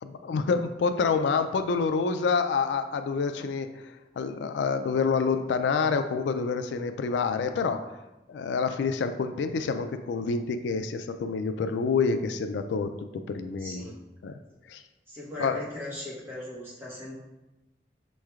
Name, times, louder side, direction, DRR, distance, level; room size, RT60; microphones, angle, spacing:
voice 1, 0.0-7.9 8.3-12.9 13.3-13.9 14.2-14.3 14.7-14.8 15.4-15.6, left 5 dB, 80° left, 8 dB, 0.3 m, -27 dB
voice 2, 13.6-14.0 15.1-17.2, left 1 dB, 15° right, -8 dB, 1.2 m, -39 dB
6.4 x 3.1 x 2.4 m, 1.0 s
head